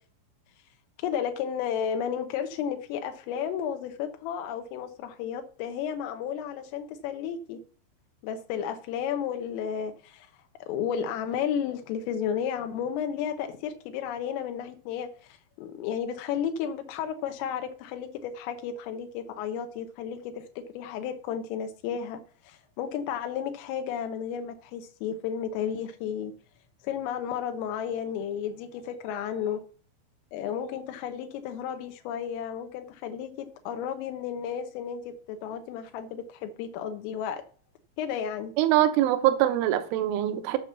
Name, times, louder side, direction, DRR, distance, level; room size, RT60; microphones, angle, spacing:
voice 1, 1.0-7.6 8.2-10.3 10.6-26.3 26.8-29.6 30.3-37.4 38.0-38.5, left 8 dB, 85° left, 3.5 m, -33 dB
voice 2, 38.6-40.6, right 13 dB, 80° right, 3.2 m, -23 dB
10.5 x 5.9 x 6.8 m
omnidirectional pair, 5.8 m